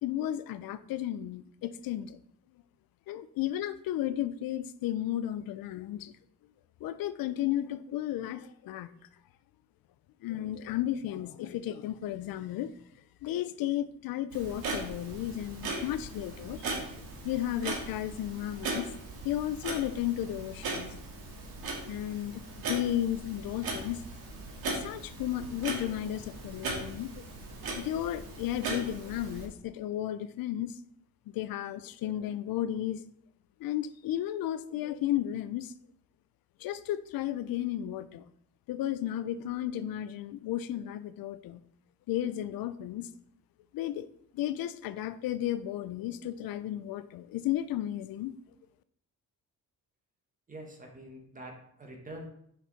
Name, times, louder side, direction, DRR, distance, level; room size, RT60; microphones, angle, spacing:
voice 1, 0.0-2.2 3.1-6.1 6.8-8.9 10.2-12.7 13.2-16.8 17.2-18.9 19.2-20.9 21.9-24.0 24.6-27.3 27.8-30.8 31.3-33.0 33.6-35.7 36.6-38.2 38.7-41.6 42.1-43.2 43.7-44.1 44.3-48.4, left 12 dB, 80° left, 14 dB, 0.5 m, -33 dB
Clock, 14.3-29.5, right 2 dB, 85° right, 2.0 m, -38 dB
voice 2, 50.5-52.3, right 1 dB, 25° right, 2 dB, 1.4 m, -45 dB
6.0 x 5.9 x 4.0 m, 0.69 s
cardioid pair, 160°, 35 cm